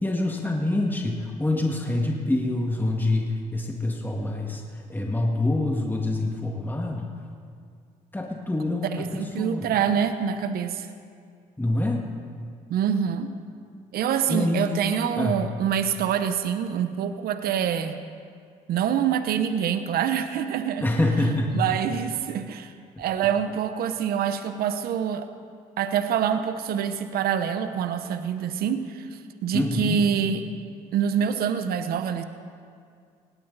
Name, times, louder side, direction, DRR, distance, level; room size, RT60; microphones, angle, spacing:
voice 1, 0.0-7.1 8.1-9.7 11.6-12.0 14.3-14.7 15.2-15.3 20.8-21.7 29.5-30.0, left 2 dB, 10° left, 0 dB, 2.1 m, -26 dB
voice 2, 8.8-10.9 12.7-13.3 13.9-18.0 18.7-20.9 21.5-22.7 23.0-25.3 25.8-30.4 30.9-32.2, right 8 dB, 75° right, 9 dB, 1.0 m, -26 dB
19.0 x 17.0 x 4.1 m, 2.2 s
supercardioid pair, 65°, 16 cm